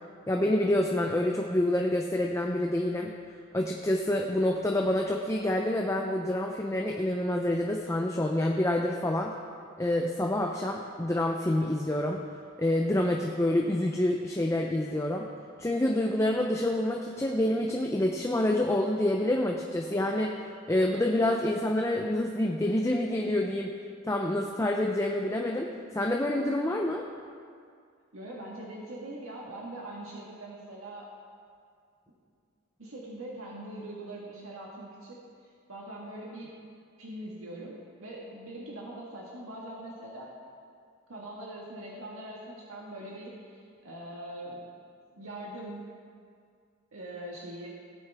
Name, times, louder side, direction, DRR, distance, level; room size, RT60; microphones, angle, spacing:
voice 1, 0.3-3.1 3.5-9.3 9.8-12.2 12.6-15.3 15.6-20.4 20.7-23.7 24.0-25.7 25.9-27.1, left 1 dB, 15° left, 1 dB, 0.5 m, -27 dB
voice 2, 28.1-31.1 32.8-35.2 35.4-36.5 37.0-40.3 41.1-44.6 45.1-45.9 46.9-47.7, right 1 dB, 90° right, -4 dB, 1.6 m, -42 dB
17.5 x 9.1 x 3.4 m, 2.2 s
head